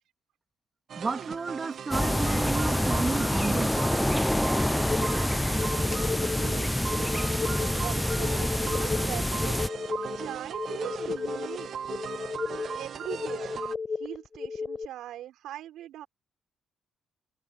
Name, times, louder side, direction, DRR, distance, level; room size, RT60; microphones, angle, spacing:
sound 1, 0.9-13.7, right 8 dB, 60° right, 1.6 m, -38 dB
voice 1, 1.0-3.8, right 4 dB, 30° right, 2.7 m, -32 dB
sound 2, 1.9-9.7, left 1 dB, 5° left, 0.5 m, -27 dB
sound 3, 4.9-14.9, left 5 dB, 35° left, 5.3 m, -34 dB
voice 2, 6.1-6.8 7.8-9.5 10.1-11.7 12.8-13.6 13.9-16.1, right 12 dB, 85° right, 4.9 m, -41 dB
cardioid pair, 90°, 0 cm